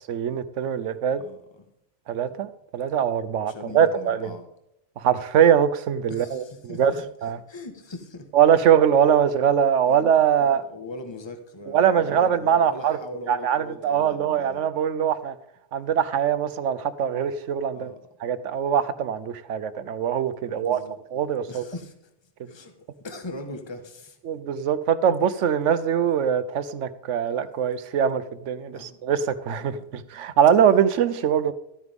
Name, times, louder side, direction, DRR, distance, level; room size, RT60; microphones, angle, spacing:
voice 1, 0.0-1.2 2.1-4.3 5.0-6.9 7.2-7.4 8.3-10.7 11.7-13.0 13.3-15.3 15.7-17.9 18.2-20.8 21.1-21.6 24.2-31.5, right 8 dB, 85° right, 14 dB, 1.1 m, -22 dB
voice 2, 1.1-1.6 3.5-4.5 6.1-8.3 9.9-14.6 17.7-18.0 20.5-21.0 21.5-21.9 22.4-24.2 28.7-29.0 29.6-29.8, left 2 dB, 25° left, 6 dB, 1.3 m, -40 dB
13.5 x 9.7 x 3.6 m, 0.83 s
omnidirectional pair, 1.2 m